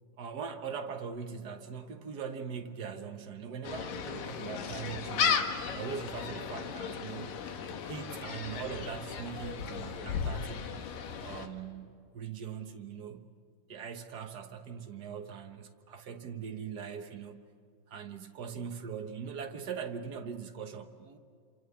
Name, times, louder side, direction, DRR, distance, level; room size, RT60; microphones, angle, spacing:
voice 1, 0.2-7.4 7.9-10.8 11.2-13.3 13.7-17.4 17.9-21.2, right 6 dB, 65° right, 6 dB, 1.0 m, -41 dB
Gull seagull, 3.6-11.5, left 6 dB, 85° left, 3.3 m, -35 dB
28.0 x 27.5 x 7.1 m, 2.4 s
omnidirectional pair, 3.8 m